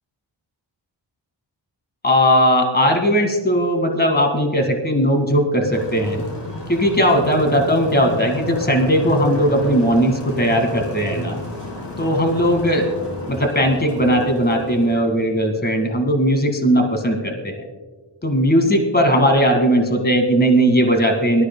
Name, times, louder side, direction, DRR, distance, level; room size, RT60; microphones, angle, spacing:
voice 1, 2.0-6.3 6.7-11.4 12.0-12.9 13.3-17.5 18.2-21.4, equal, 20° left, 3 dB, 1.9 m, -18 dB
sound 1, 5.7-15.0, left 1 dB, 75° left, 4.3 m, -32 dB
24.5 x 13.0 x 2.2 m, 1.4 s
wide cardioid pair, 120°, 43 cm